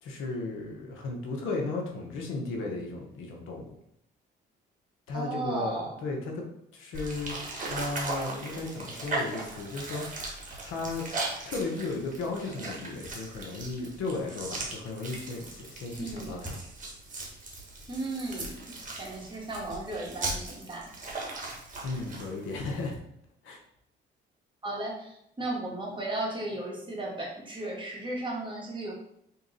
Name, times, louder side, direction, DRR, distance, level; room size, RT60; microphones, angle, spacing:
voice 1, 0.0-3.7 5.1-6.4 6.7-7.4 7.7-10.0 10.6-11.0 11.4-16.6 21.8-23.0 23.4-23.6, left 3 dB, 85° left, 1 dB, 0.9 m, -35 dB
voice 2, 5.1-6.0 16.0-16.3 17.9-20.9 24.6-28.9, right 2 dB, 25° right, -3 dB, 1.4 m, -35 dB
sound 1, 6.9-22.9, right 2 dB, 40° right, 1.3 m, -38 dB
3.6 x 2.8 x 3.9 m, 0.74 s
cardioid pair, 90°, 20 cm